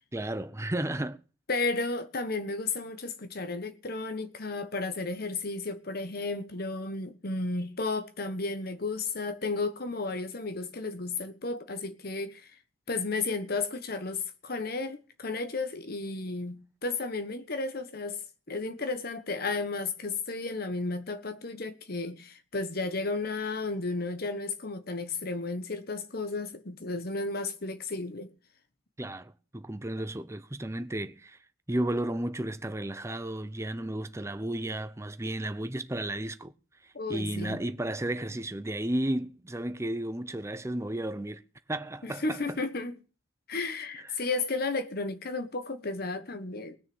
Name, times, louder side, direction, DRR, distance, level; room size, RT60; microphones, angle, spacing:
voice 1, 0.1-1.2 29.0-31.4 31.7-36.5 37.1-41.4 41.7-42.6, right 1 dB, 15° right, 0.7 m, -33 dB
voice 2, 1.5-12.5 12.9-18.2 18.5-28.3 36.9-37.6 42.0-43.0 43.5-46.8, left 3 dB, 55° left, 1.3 m, -33 dB
19.0 x 6.6 x 7.0 m
head